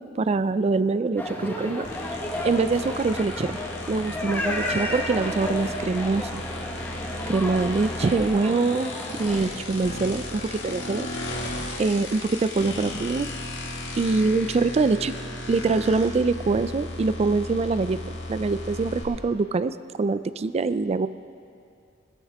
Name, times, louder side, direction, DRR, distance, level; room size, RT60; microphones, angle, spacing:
voice 1, 0.0-1.9 2.4-3.6 3.9-6.4 7.3-8.9 9.2-11.1 11.8-13.3 14.0-15.1 15.5-18.0 18.3-21.1, right 3 dB, 35° right, 14 dB, 0.3 m, -24 dB
sound 1, 1.2-9.5, left 1 dB, 10° left, 1.3 m, -32 dB
sound 2, 1.8-19.0, left 2 dB, 65° left, 2.0 m, -35 dB
21.0 x 13.5 x 3.5 m, 2.4 s
head